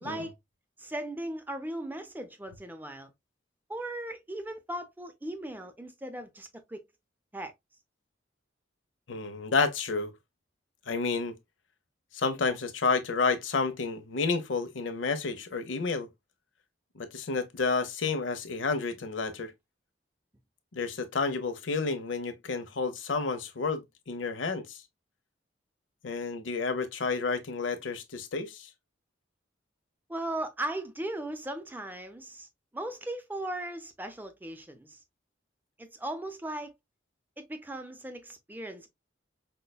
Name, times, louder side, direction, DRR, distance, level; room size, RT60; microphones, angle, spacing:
voice 1, 0.0-0.3 0.8-3.1 3.7-6.8 7.3-7.5 30.1-32.5 32.7-35.0 35.8-36.7 37.4-38.9, right 1 dB, 10° right, 0.5 m, -37 dB
voice 2, 9.1-10.1 10.9-11.3 12.1-16.1 16.9-19.5 20.7-24.8 26.0-28.7, left 4 dB, 80° left, 0.7 m, -30 dB
5.3 x 2.1 x 2.2 m
head